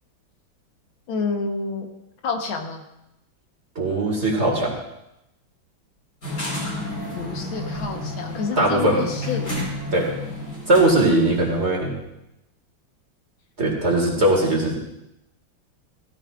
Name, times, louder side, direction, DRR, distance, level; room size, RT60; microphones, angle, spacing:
voice 1, 1.1-1.9 2.2-2.8 7.1-9.6, left 4 dB, 80° left, 3 dB, 2.0 m, -28 dB
voice 2, 3.8-4.7 8.6-9.1 9.9-10.1 10.7-12.0 13.6-14.9, right 1 dB, 35° right, 0 dB, 2.2 m, -20 dB
sound 1, 6.2-11.5, left 1 dB, 55° left, 4.8 m, -31 dB
15.5 x 14.0 x 2.5 m, 0.88 s
omnidirectional pair, 2.2 m